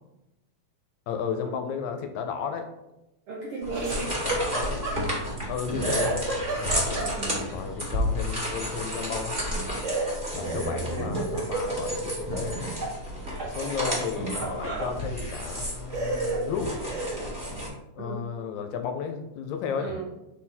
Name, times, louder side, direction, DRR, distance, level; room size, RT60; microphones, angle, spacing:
voice 1, 1.1-2.7 4.1-4.9 5.5-7.0 7.5-9.4 10.3-12.7 13.4-16.8 18.0-20.0, left 6 dB, 80° left, 7 dB, 1.8 m, -33 dB
voice 2, 3.3-4.1 6.9-7.4 18.0-18.2 19.7-20.1, right 3 dB, 75° right, -3 dB, 1.2 m, -36 dB
sound 1, 3.6-17.7, equal, 25° right, 1.3 m, -32 dB
Laughter, 3.7-5.5 5.8-7.5 9.8-12.9 13.3-14.9 15.5-15.6 15.9-17.3, right 2 dB, 40° right, 1.0 m, -32 dB
5.7 x 4.2 x 4.2 m, 0.94 s
omnidirectional pair, 3.5 m